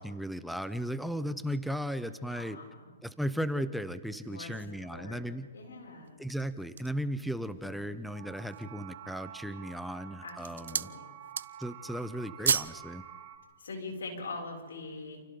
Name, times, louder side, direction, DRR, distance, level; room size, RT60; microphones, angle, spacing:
voice 1, 0.0-2.6 3.0-5.5 6.2-10.9 11.6-13.0, equal, ahead, 11 dB, 0.7 m, -36 dB
voice 2, 2.3-2.9 4.2-4.5 4.8-5.3 5.5-6.2 10.2-11.0 13.6-15.2, left 3 dB, 85° left, 1 dB, 6.5 m, -43 dB
Motor vehicle (road), 3.2-3.4 4.5-8.8, right 8 dB, 25° right, 2.2 m, -61 dB
sound 1, 6.1-7.1 7.7-7.8 8.2-8.8 9.5-9.9 10.2-11.0 11.2-11.8 12.0-12.8 13.1-13.3, right 7 dB, 80° right, 0.6 m, -32 dB
sound 2, 8.1-13.4, right 9 dB, 50° right, 2.9 m, -49 dB
29.0 x 29.0 x 3.9 m, 1.3 s
hypercardioid pair, 145°, 0 cm